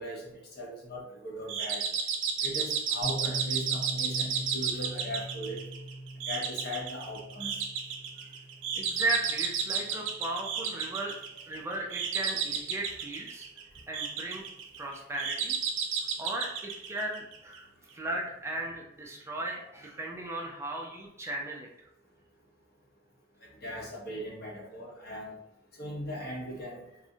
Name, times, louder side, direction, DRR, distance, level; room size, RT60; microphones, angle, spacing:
voice 1, 0.0-1.8 2.4-5.6 6.3-7.5 23.6-25.3 25.8-26.8, equal, 55° left, -1 dB, 0.8 m, -39 dB
sound 1, 1.5-17.6, right 6 dB, 85° right, 0.4 m, -33 dB
Piano, 3.0-10.5, right 1 dB, 15° left, 0.7 m, -42 dB
voice 2, 8.8-11.2 11.5-13.4 13.9-14.5 14.8-15.6 16.2-17.7 17.9-21.7, right 2 dB, 15° right, 0 dB, 0.3 m, -36 dB
3.6 x 2.1 x 2.6 m, 0.77 s
head